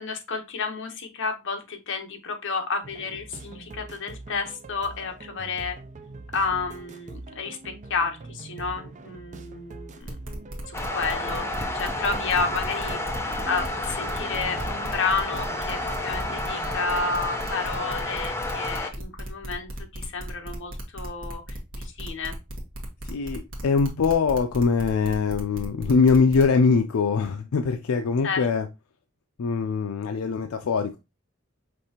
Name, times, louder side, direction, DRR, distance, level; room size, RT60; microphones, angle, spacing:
voice 1, 0.0-5.8 6.3-10.2 10.7-11.5 11.7-22.3 28.2-28.5, left 4 dB, 60° left, 4 dB, 0.9 m, -31 dB
sound 1, 2.8-16.8, right 3 dB, 35° right, 0.5 m, -43 dB
sound 2, 10.0-26.4, right 1 dB, 65° right, 1.2 m, -37 dB
sound 3, 10.7-18.9, left 2 dB, 15° left, 0.5 m, -31 dB
voice 2, 23.0-28.7 29.4-31.0, left 5 dB, 85° left, 7 dB, 0.4 m, -22 dB
5.2 x 3.2 x 2.8 m, 0.26 s
head